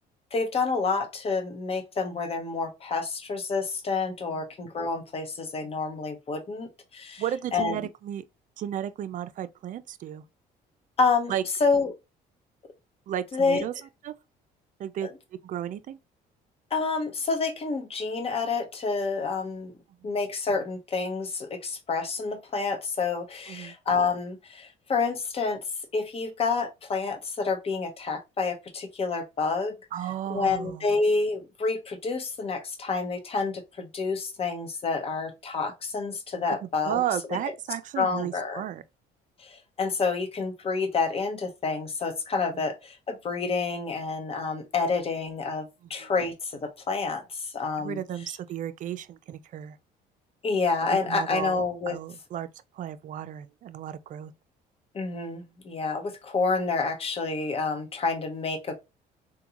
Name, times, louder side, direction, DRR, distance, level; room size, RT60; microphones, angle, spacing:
voice 1, 0.3-7.2 7.5-7.8 11.0-11.3 11.6-11.9 13.3-13.7 16.7-19.7 20.0-25.6 25.9-29.7 30.3-37.0 37.3-37.4 38.0-38.6 39.4-48.0 50.4-52.0 54.9-58.7, left 4 dB, 35° left, 0.8 m, -28 dB
voice 2, 7.2-8.2 8.6-10.2 11.3-11.4 13.1-13.7 14.0-14.1 14.8-15.1 15.4-16.0 23.5-23.7 29.9-30.9 36.5-38.8 42.5-42.6 46.0-46.1 47.8-49.8 51.1-52.5 52.7-54.3, right 11 dB, 50° right, 0.4 m, -33 dB
3.7 x 2.2 x 2.8 m
cardioid pair, 110°, 17 cm